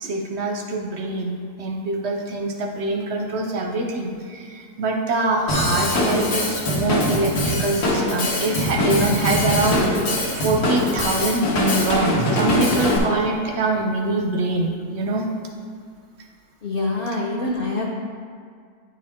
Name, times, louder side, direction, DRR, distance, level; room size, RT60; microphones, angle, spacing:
voice 1, 0.0-10.1 10.3-15.3, right 2 dB, 60° right, 2 dB, 0.7 m, -24 dB
Drum kit / Drum, 5.5-13.0, left 1 dB, 80° left, 1.8 m, -22 dB
voice 2, 16.6-17.8, left 2 dB, 50° left, -3 dB, 0.7 m, -25 dB
9.8 x 4.8 x 3.6 m, 2.1 s
omnidirectional pair, 1.6 m